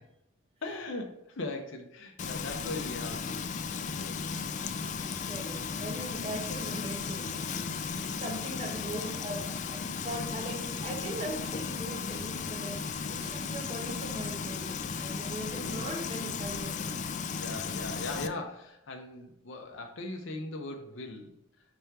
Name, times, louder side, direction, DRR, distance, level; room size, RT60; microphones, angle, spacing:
voice 1, 0.6-4.9 15.5-16.4 17.4-21.3, left 2 dB, 60° left, 3 dB, 0.6 m, -40 dB
Frying (food), 2.2-18.3, left 5 dB, 35° left, 0.3 m, -35 dB
voice 2, 5.3-17.0, right 1 dB, 30° right, 0 dB, 1.0 m, -40 dB
6.1 x 3.4 x 4.5 m, 0.81 s
head